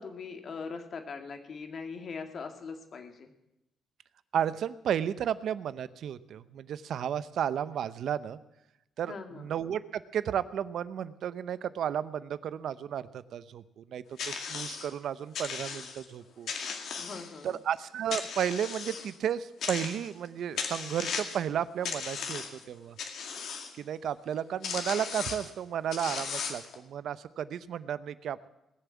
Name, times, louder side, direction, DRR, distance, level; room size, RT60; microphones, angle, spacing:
voice 1, 0.0-3.3 9.1-9.5 17.0-17.6, left 5 dB, 50° left, 6 dB, 2.1 m, -41 dB
voice 2, 4.3-8.4 9.0-16.5 17.4-23.0 23.7-28.5, right 9 dB, 70° right, 15 dB, 0.7 m, -33 dB
sound 1, 14.2-14.9 15.3-16.1 16.5-17.5 18.1-19.1 19.6-20.3 20.6-21.4 21.8-22.6 23.0-23.7 24.3-24.4 24.6-25.5 25.9-26.8, left 6 dB, 70° left, 2.1 m, -36 dB
19.5 x 7.0 x 8.5 m, 0.88 s
cardioid pair, 90°, 0 cm